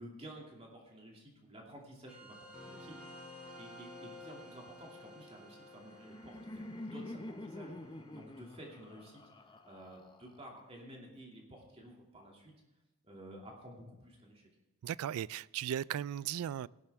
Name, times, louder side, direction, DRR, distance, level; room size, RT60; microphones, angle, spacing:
voice 1, 0.0-3.3 3.6-12.5 13.0-14.4, right 1 dB, 25° right, 2.4 m, -52 dB
sound 1, 2.1-9.2, left 1 dB, 5° right, 4.4 m, -53 dB
Laughter, 5.6-10.6, left 1 dB, 20° left, 0.6 m, -47 dB
voice 2, 14.8-16.7, right 10 dB, 75° right, 0.3 m, -37 dB
17.0 x 12.0 x 3.5 m
head